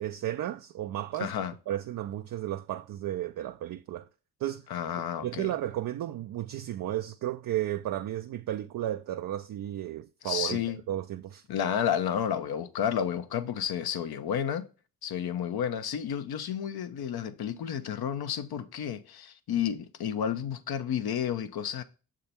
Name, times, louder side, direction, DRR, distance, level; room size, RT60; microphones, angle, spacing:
voice 1, 0.0-1.3 1.7-4.1 4.4-4.7 5.2-11.4, right 12 dB, 55° right, 0.5 m, -33 dB
voice 2, 1.2-1.5 4.7-5.5 10.2-10.8 11.5-14.6 15.0-21.8, left 9 dB, 65° left, 0.9 m, -31 dB
6.7 x 3.7 x 4.3 m
supercardioid pair, 45°, 41 cm